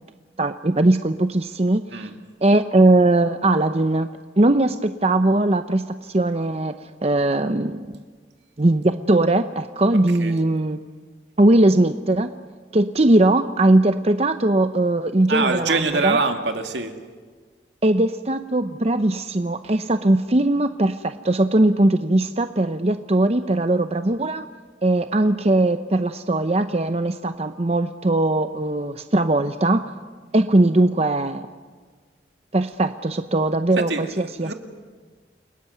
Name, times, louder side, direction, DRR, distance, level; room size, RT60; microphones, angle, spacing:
voice 1, 0.4-2.1 2.4-4.1 4.4-6.7 7.0-8.0 8.6-10.8 11.4-12.3 12.7-16.2 17.8-24.5 24.8-29.8 30.3-31.5 32.5-34.5, right 2 dB, 35° right, 9 dB, 0.7 m, -20 dB
voice 2, 15.3-17.0 33.8-34.5, right 3 dB, 75° right, 5 dB, 2.5 m, -24 dB
29.5 x 20.0 x 9.5 m, 1.5 s
head